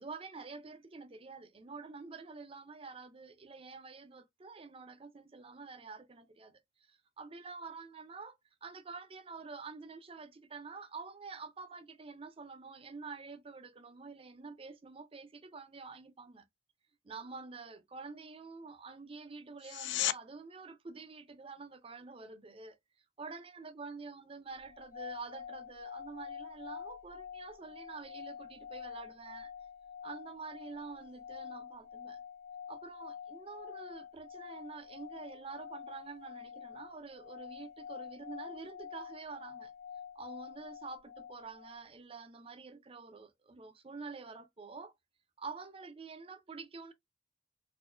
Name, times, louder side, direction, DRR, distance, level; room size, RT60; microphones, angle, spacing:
voice 1, 0.0-6.6 6.9-8.4 8.6-16.4 17.0-22.8 23.2-29.5 30.0-32.2 32.7-39.7 40.2-44.9 45.4-46.9, right 4 dB, 30° right, 0.5 m, -47 dB
sound 1, 19.6-20.2 31.5-31.6, left 14 dB, 75° left, 0.3 m, -33 dB
sound 2, 24.6-41.8, left 7 dB, 45° left, 0.9 m, -47 dB
4.2 x 2.5 x 2.5 m
head